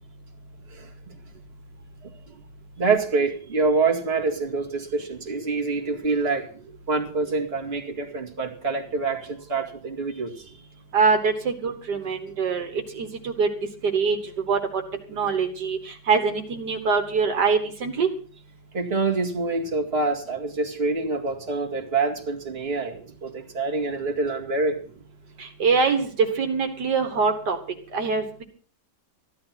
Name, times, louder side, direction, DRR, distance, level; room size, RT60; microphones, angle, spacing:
voice 1, 2.8-10.6 14.5-14.6 18.7-24.8, right 3 dB, 35° right, 1 dB, 2.3 m, -26 dB
voice 2, 10.9-13.5 13.9-14.2 14.5-14.8 15.1-18.1 25.4-26.1 26.4-27.6 27.9-28.4, right 5 dB, 75° right, 5 dB, 2.1 m, -24 dB
14.5 x 11.5 x 5.8 m, 0.43 s
omnidirectional pair, 1.8 m